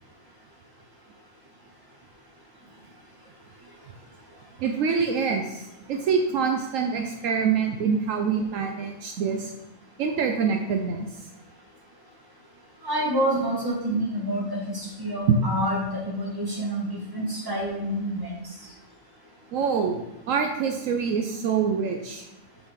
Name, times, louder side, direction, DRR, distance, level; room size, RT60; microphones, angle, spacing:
voice 1, 4.6-9.5 10.0-11.1 15.3-15.4 19.5-22.2, right 6 dB, 75° right, 3 dB, 1.0 m, -25 dB
voice 2, 12.8-18.3, right 1 dB, 15° right, -4 dB, 1.8 m, -28 dB
5.8 x 4.2 x 5.1 m, 0.92 s
omnidirectional pair, 1.4 m